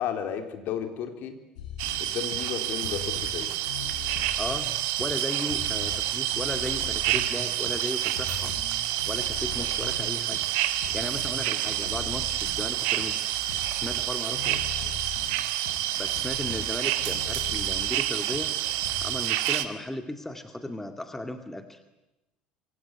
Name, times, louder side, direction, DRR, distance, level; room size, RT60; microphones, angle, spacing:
voice 1, 0.0-1.4 2.0-3.5 9.6-9.7, left 9 dB, 50° left, 6 dB, 3.6 m, -33 dB
sound 1, 1.6-19.1, left 6 dB, 65° left, 7.3 m, -41 dB
sound 2, 1.8-19.6, right 13 dB, 55° right, 1.9 m, -28 dB
voice 2, 4.4-4.7 5.0-8.6 9.1-10.4 10.9-13.3 13.7-14.6 16.0-18.5 19.0-21.8, left 1 dB, 5° left, 7 dB, 2.3 m, -36 dB
26.5 x 23.0 x 9.6 m, 0.96 s
figure-of-eight pair, 65°, 4 cm